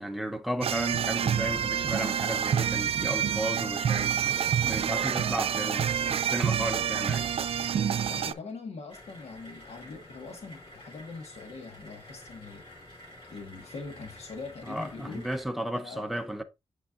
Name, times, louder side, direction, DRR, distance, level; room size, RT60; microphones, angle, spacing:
voice 1, 0.0-7.3 14.7-16.4, right 1 dB, ahead, 0.6 m, -34 dB
sound 1, 0.6-8.3, right 8 dB, 70° right, 0.4 m, -27 dB
voice 2, 8.0-12.7 13.2-15.3 15.8-16.1, left 4 dB, 85° left, 1.5 m, -42 dB
sound 2, 8.9-15.4, left 1 dB, 55° left, 3.0 m, -50 dB
8.5 x 4.6 x 2.5 m
wide cardioid pair, 170°, 10 cm